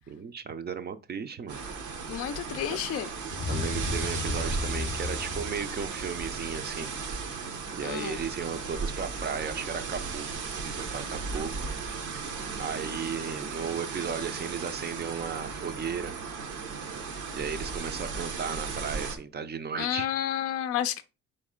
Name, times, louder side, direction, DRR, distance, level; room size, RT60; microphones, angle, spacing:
voice 1, 0.1-1.6 2.7-2.8 3.5-6.9 7.7-11.7 12.6-16.2 17.3-20.1, right 6 dB, 35° right, 0.5 m, -35 dB
sound 1, 1.5-19.2, right 5 dB, 75° right, 1.0 m, -35 dB
voice 2, 2.1-3.1 7.8-8.2 19.8-21.0, left 10 dB, 50° left, 0.4 m, -30 dB
sound 2, 3.3-6.5, left 4 dB, 30° left, 0.8 m, -35 dB
4.2 x 3.2 x 3.6 m
cardioid pair, 90°, 30 cm